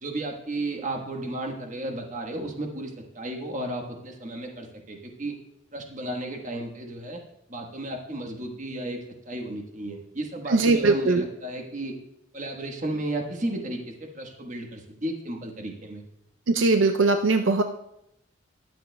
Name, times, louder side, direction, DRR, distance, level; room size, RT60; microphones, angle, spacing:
voice 1, 0.0-5.3 5.7-7.2 7.5-9.0 9.2-11.9 12.3-16.0, right 1 dB, 40° right, 2 dB, 1.3 m, -33 dB
voice 2, 10.5-11.2 16.5-17.6, right 3 dB, 70° right, 6 dB, 0.5 m, -20 dB
21.0 x 7.6 x 2.2 m, 0.81 s
head